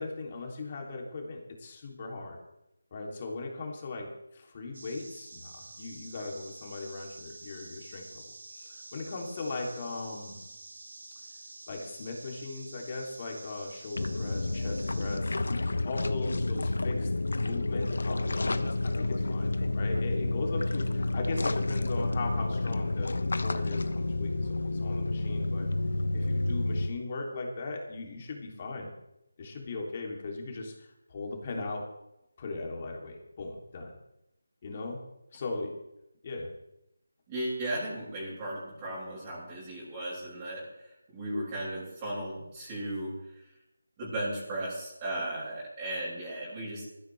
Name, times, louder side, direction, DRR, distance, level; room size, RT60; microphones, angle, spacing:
voice 1, 0.0-2.4 2.9-8.2 8.5-10.4 11.7-15.4 15.8-25.7 26.1-28.9 29.4-31.8 32.4-33.9 34.6-35.0 35.3-35.7 36.2-36.5, left 3 dB, 35° left, 0 dB, 3.3 m, -38 dB
sound 1, 4.7-15.2, right 2 dB, 65° right, 3.5 m, -48 dB
sound 2, 13.9-26.9, left 2 dB, 65° left, 1.2 m, -30 dB
voice 2, 37.3-43.4 44.0-46.8, right 1 dB, 20° right, -6 dB, 6.7 m, -36 dB
21.0 x 14.5 x 3.5 m, 0.86 s
figure-of-eight pair, 160°, 0 cm